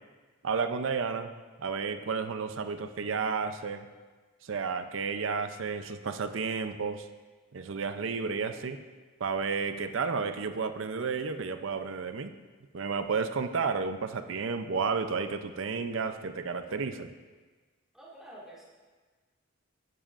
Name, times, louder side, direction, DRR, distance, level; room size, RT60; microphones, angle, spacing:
voice 1, 0.4-1.3 1.6-3.9 4.4-7.1 7.5-8.8 9.2-12.3 12.7-17.1, right 5 dB, 65° right, 8 dB, 0.5 m, -32 dB
voice 2, 17.9-18.6, right 1 dB, 5° right, -7 dB, 2.2 m, -48 dB
12.5 x 10.0 x 2.5 m, 1.4 s
head